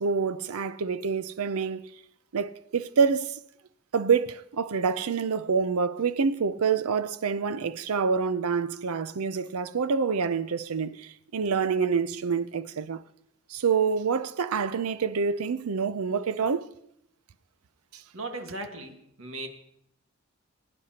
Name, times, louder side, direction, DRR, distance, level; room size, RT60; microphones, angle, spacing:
voice 1, 0.0-1.8 2.3-3.4 3.9-13.0 13.5-16.7, right 5 dB, 85° right, 0.5 m, -27 dB
voice 2, 18.1-19.5, right 2 dB, 65° right, 1.6 m, -37 dB
22.0 x 9.8 x 2.9 m
head